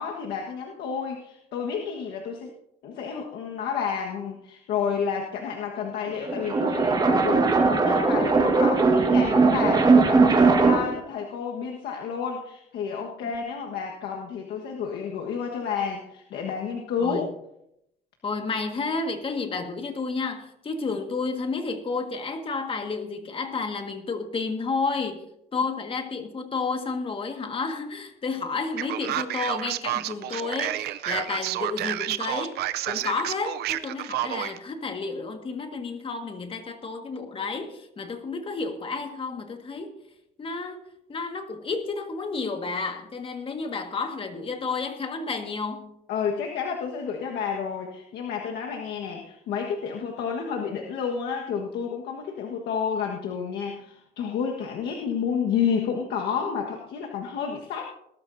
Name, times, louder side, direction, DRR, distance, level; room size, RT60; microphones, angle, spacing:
voice 1, 0.0-2.5 2.8-17.3 46.1-57.9, left 6 dB, 75° left, 1.5 m, -30 dB
sound 1, 6.1-11.0, right 4 dB, 25° right, 1.6 m, -19 dB
voice 2, 18.2-25.3 25.5-32.6 32.9-39.9 40.4-40.8 41.1-45.9, left 4 dB, 30° left, 1.8 m, -31 dB
Male speech man speaking, 28.8-34.6, right 13 dB, 75° right, 0.6 m, -30 dB
20.0 x 12.5 x 2.7 m
cardioid pair, 110°, 17 cm